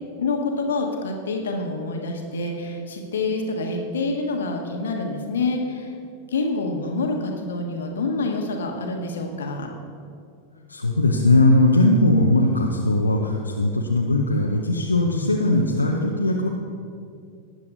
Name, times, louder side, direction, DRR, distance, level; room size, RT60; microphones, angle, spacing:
voice 1, 0.2-5.9 6.3-9.7, left 3 dB, 65° left, 2 dB, 1.4 m, -27 dB
voice 2, 10.7-16.5, left 2 dB, 80° left, 0 dB, 0.8 m, -19 dB
18.5 x 9.7 x 2.7 m, 2.4 s
figure-of-eight pair, 90°, 0 cm